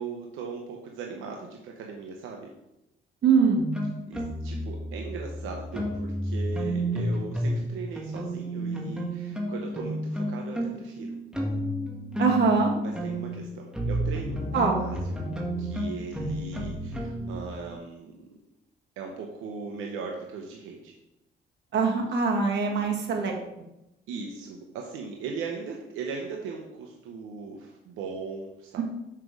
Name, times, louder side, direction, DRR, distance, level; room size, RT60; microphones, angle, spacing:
voice 1, 0.0-2.5 4.1-11.1 12.8-15.2 15.6-18.4 19.0-20.9 24.1-28.8, right 5 dB, 90° right, 1 dB, 0.9 m, -38 dB
voice 2, 3.2-3.6 12.2-12.7 14.5-14.8 21.7-23.3 28.8-28.9, right 5 dB, 60° right, 0 dB, 1.9 m, -23 dB
sound 1, 3.6-7.6 8.0-17.5, equal, 5° right, 1.7 m, -31 dB
6.7 x 5.9 x 4.7 m, 0.90 s
cardioid pair, 90°, 20 cm